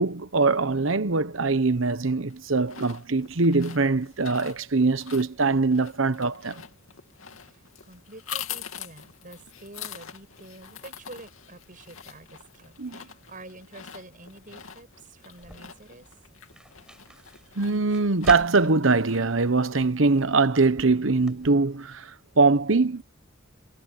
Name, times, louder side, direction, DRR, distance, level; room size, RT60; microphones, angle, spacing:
voice 1, 0.0-6.6 12.8-13.0 17.6-23.0, right 3 dB, 70° right, 1.1 m, -22 dB
Chips Eating Crunching Binaural Sounds, 2.3-20.3, left 8 dB, 85° left, 2.7 m, -44 dB
voice 2, 7.4-16.1, right 2 dB, 40° right, 7.0 m, -47 dB
sound 1, 15.4-21.5, equal, 5° right, 5.5 m, -45 dB
head